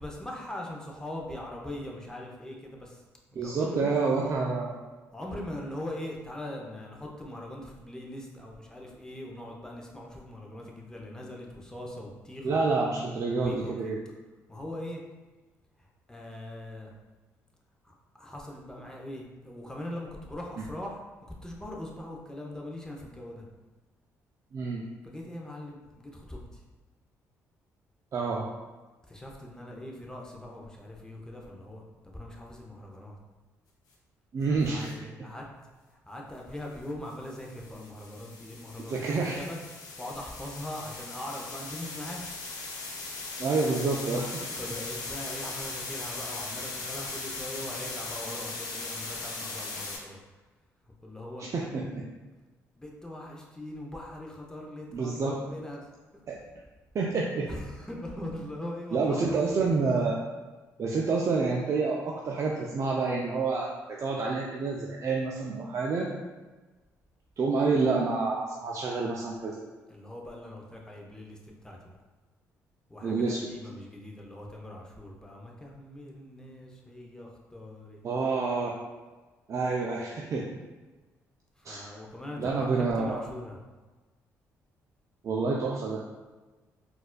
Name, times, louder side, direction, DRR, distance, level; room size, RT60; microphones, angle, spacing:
voice 1, 0.0-3.0 3.4-4.3 5.1-12.6 13.3-13.9 14.5-15.0 15.8-16.9 17.8-23.5 25.0-26.6 29.1-33.2 34.5-35.5 35.9-42.3 44.6-50.2 50.9-51.5 52.8-55.9 57.5-59.3 69.9-72.0 72.9-78.4 81.6-83.6, left 1 dB, 10° left, -1 dB, 0.6 m, -41 dB
voice 2, 3.4-4.7 12.4-14.0 24.5-24.8 28.1-28.5 34.3-34.9 38.9-39.4 43.4-44.6 51.4-52.0 54.9-55.3 56.3-56.4 56.9-57.6 58.9-60.2 60.8-66.1 67.4-69.7 73.0-73.5 78.0-78.7 79.5-80.5 81.6-81.9 82.4-83.2 85.2-86.0, right 4 dB, 50° right, -2 dB, 0.4 m, -28 dB
sound 1, 34.6-34.9 37.1-50.0, left 3 dB, 70° left, 0.6 m, -39 dB
4.0 x 2.5 x 2.2 m, 1.2 s
supercardioid pair, 60°, 7 cm